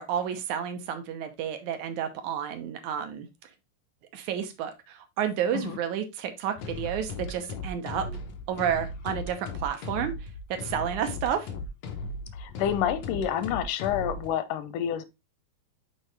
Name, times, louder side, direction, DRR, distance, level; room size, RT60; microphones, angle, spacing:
voice 1, 0.0-3.3 4.1-8.1 8.5-11.5, right 8 dB, 75° right, 2.2 m, -31 dB
sound 1, 6.6-14.3, left 3 dB, 65° left, 2.1 m, -37 dB
voice 2, 12.3-15.0, left 10 dB, 90° left, 2.3 m, -28 dB
6.4 x 4.6 x 3.2 m
omnidirectional pair, 3.5 m